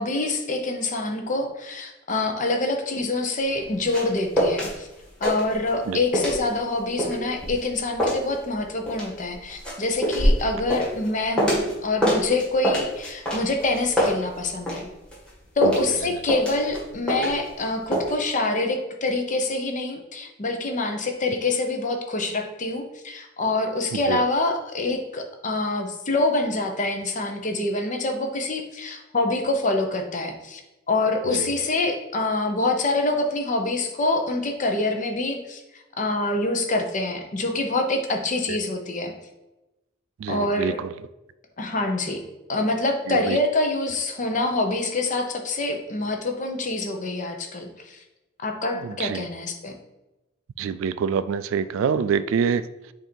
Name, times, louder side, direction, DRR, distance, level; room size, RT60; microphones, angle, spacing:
voice 1, 0.0-4.9 5.2-14.9 15.6-30.6 30.9-35.6 36.0-39.1 40.3-40.8 41.6-42.2 42.5-47.7 48.4-49.7, left 2 dB, 40° left, 4 dB, 0.8 m, -26 dB
sound 1, 3.5-4.7 5.0-5.9 6.1-11.7 12.0-14.8 15.1-17.6 17.9-18.1, equal, 5° left, 1.9 m, -25 dB
voice 2, 23.9-24.2 31.3-31.5 38.5-38.6 40.2-40.9 43.1-43.4 48.8-49.3 50.6-52.6, right 6 dB, 75° right, 16 dB, 0.3 m, -26 dB
7.8 x 2.7 x 4.4 m, 1.0 s
head